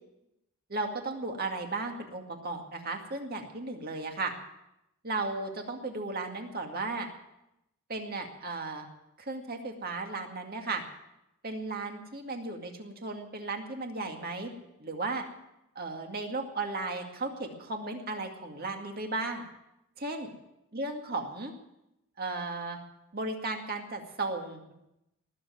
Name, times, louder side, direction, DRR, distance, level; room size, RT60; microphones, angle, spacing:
voice 1, 0.7-4.3 5.0-7.1 7.9-8.9 9.2-10.8 11.4-14.5 14.8-15.2 15.8-19.4 20.0-20.3 20.7-21.5 22.2-22.8 23.1-24.7, right 3 dB, 45° right, 3 dB, 2.2 m, -35 dB
19.5 x 7.5 x 9.4 m, 0.87 s
head